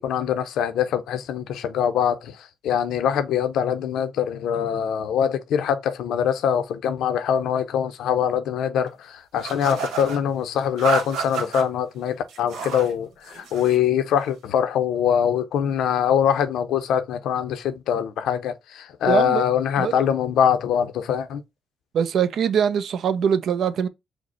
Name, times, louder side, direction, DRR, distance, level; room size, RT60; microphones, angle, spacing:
voice 1, 0.0-2.4 2.6-21.4, left 8 dB, 80° left, 0.6 m, -23 dB
sound 1, 9.4-10.2 10.8-11.6 12.3-12.9 13.2-13.8, right 5 dB, 85° right, 1.1 m, -30 dB
voice 2, 19.1-19.5 19.8-20.0 21.9-23.9, right 7 dB, 65° right, 0.5 m, -22 dB
5.1 x 2.1 x 4.0 m
cardioid pair, 90°, 0 cm